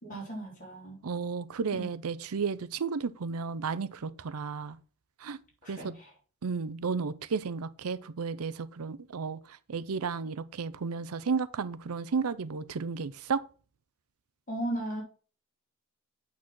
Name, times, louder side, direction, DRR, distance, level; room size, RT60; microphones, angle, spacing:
voice 1, 0.0-1.0 1.7-1.9 5.6-6.1 14.5-15.0, right 1 dB, 35° left, 4.3 m, -36 dB
voice 2, 1.0-4.8 5.2-5.4 5.7-5.9 6.4-13.4, right 5 dB, 75° right, 0.6 m, -33 dB
8.6 x 4.2 x 6.1 m
head